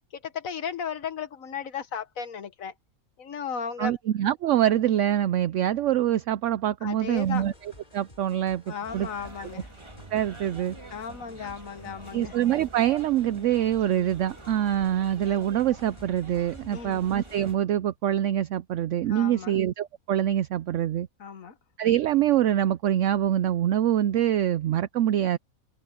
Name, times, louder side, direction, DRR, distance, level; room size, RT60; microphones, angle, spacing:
voice 1, 0.2-2.7 3.2-3.9 6.8-7.5 8.7-9.7 10.9-12.3 16.7-17.0 19.1-19.6 21.2-21.5, left 6 dB, 65° left, 1.7 m, -35 dB
voice 2, 3.8-9.1 9.4-9.5 10.1-10.8 12.1-21.1 21.8-25.4, right 11 dB, 65° right, 0.8 m, -25 dB
sound 1, 7.0-17.6, left 1 dB, 30° left, 3.8 m, -52 dB
sound 2, 8.9-17.5, right 3 dB, 20° right, 1.7 m, -46 dB
omnidirectional pair, 1.5 m